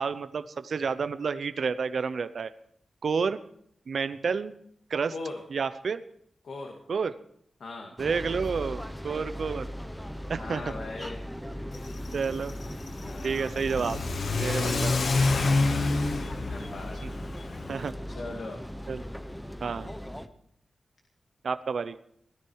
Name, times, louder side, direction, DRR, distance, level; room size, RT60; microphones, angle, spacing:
voice 1, 0.0-2.5 3.0-3.4 3.9-4.5 4.9-5.1 5.5-6.0 6.9-7.1 8.0-9.7 10.3-10.7 12.1-12.5 13.2-14.0 14.4-14.9 17.0-17.1 17.7-17.9 18.9-19.0 19.6-19.9 21.4-22.0, right 5 dB, 60° right, 12 dB, 0.7 m, -30 dB
voice 2, 6.4-6.8 7.6-7.9 10.3-11.2 13.0-13.5 15.3-17.2 18.1-18.6, left 3 dB, 70° left, 1 dB, 2.2 m, -40 dB
sound 1, 8.0-20.3, equal, 5° left, 0.8 m, -38 dB
Car / Accelerating revving vroom, 11.7-17.9, left 3 dB, 50° left, 1.2 m, -29 dB
17.5 x 13.5 x 4.7 m, 0.67 s
wide cardioid pair, 170°, 0 cm